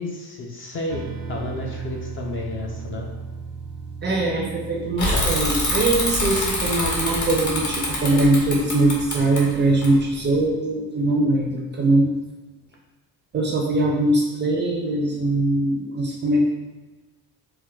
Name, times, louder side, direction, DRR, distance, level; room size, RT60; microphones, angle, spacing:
voice 1, 0.0-3.1, left 2 dB, 35° left, -1 dB, 0.4 m, -31 dB
sound 1, 0.9-7.9, right 5 dB, 85° right, 0.5 m, -36 dB
voice 2, 4.0-12.1 13.3-16.5, right 2 dB, 30° right, -1 dB, 0.4 m, -21 dB
Bicycle / Mechanisms, 5.0-10.4, left 1 dB, 50° left, 0.9 m, -25 dB
4.5 x 2.1 x 2.3 m, 1.1 s
cardioid pair, 140°, 39 cm